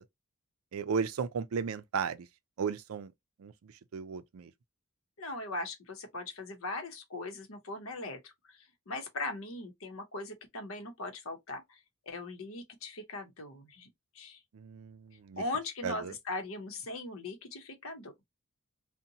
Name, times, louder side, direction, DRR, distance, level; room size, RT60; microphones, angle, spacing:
voice 1, 0.7-2.3 2.6-3.1 3.4-3.5 3.9-4.5 14.5-15.4 15.8-16.1, right 6 dB, 85° right, 0.4 m, -35 dB
voice 2, 5.2-8.6 8.9-11.8 12.1-13.9 14.1-14.4 15.4-18.1, left 2 dB, 75° left, 0.8 m, -39 dB
2.6 x 2.1 x 2.7 m
head